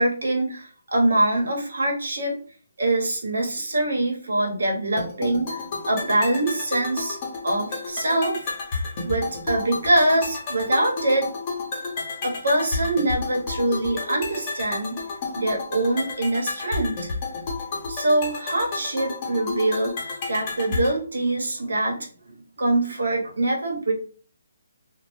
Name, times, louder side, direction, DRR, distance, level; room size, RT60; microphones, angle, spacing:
voice 1, 0.0-2.4 2.8-7.2 7.4-8.5 9.0-11.3 12.2-15.0 15.3-17.1 17.9-23.9, right 1 dB, 75° right, 1 dB, 0.8 m, -24 dB
sound 1, 5.0-21.0, left 3 dB, 30° left, 0.7 m, -32 dB
2.0 x 2.0 x 3.0 m, 0.42 s
hypercardioid pair, 160°, 0 cm